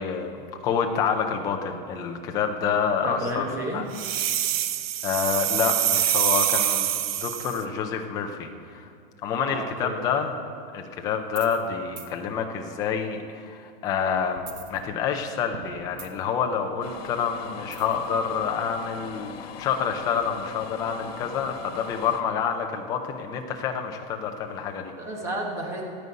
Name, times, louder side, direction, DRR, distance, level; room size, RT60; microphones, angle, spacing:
voice 1, 0.0-3.4 3.7-3.8 5.0-8.9 9.2-10.3 10.7-14.4 14.7-24.9, left 6 dB, 15° left, 4 dB, 0.5 m, -28 dB
voice 2, 3.0-3.8 9.5-10.0 25.0-25.8, right 1 dB, 10° right, -1 dB, 1.3 m, -31 dB
sound 1, 3.9-7.6, right 11 dB, 80° right, 0.7 m, -25 dB
sound 2, 11.3-11.7 12.0-12.1 14.3-15.2 15.5-16.4 17.7-18.1, right 6 dB, 50° right, 1.2 m, -42 dB
sound 3, 16.8-22.2, left 7 dB, 85° left, 1.3 m, -40 dB
16.0 x 5.4 x 9.3 m, 2.3 s
supercardioid pair, 175°, 29 cm